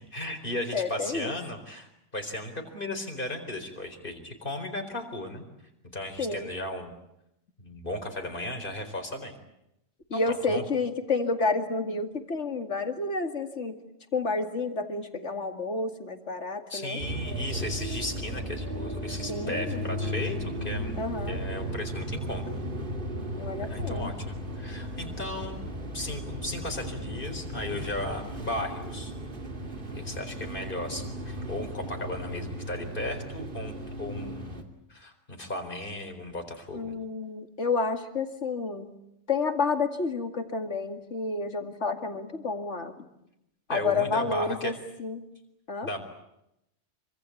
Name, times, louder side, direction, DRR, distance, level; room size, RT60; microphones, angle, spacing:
voice 1, 0.0-5.5 5.9-6.9 7.6-9.4 10.1-10.6 16.7-20.9 21.3-22.4 23.7-25.6 25.9-29.1 29.9-34.6 34.9-36.9 43.7-44.7 45.8-46.0, left 1 dB, 45° left, 5 dB, 4.5 m, -35 dB
voice 2, 0.7-1.3 6.2-6.5 10.1-13.8 14.1-17.0 19.3-20.0 21.0-21.4 23.4-24.1 36.7-38.9 39.3-42.9 43.7-44.7 45.0-45.3 45.7-45.9, left 4 dB, 75° left, 6 dB, 2.5 m, -30 dB
sound 1, 17.0-34.6, equal, 45° right, 2.9 m, -35 dB
26.5 x 25.0 x 8.5 m, 0.84 s
omnidirectional pair, 1.2 m